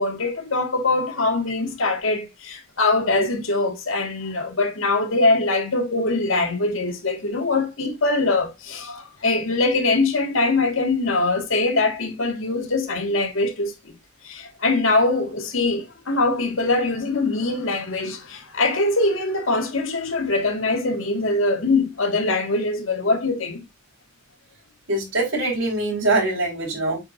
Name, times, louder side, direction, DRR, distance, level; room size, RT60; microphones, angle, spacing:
voice 1, 0.0-13.9 14.2-23.6, left 2 dB, 80° left, 1.7 m, -22 dB
voice 2, 24.9-27.0, right 2 dB, 75° right, 3.9 m, -23 dB
8.3 x 4.6 x 2.5 m
head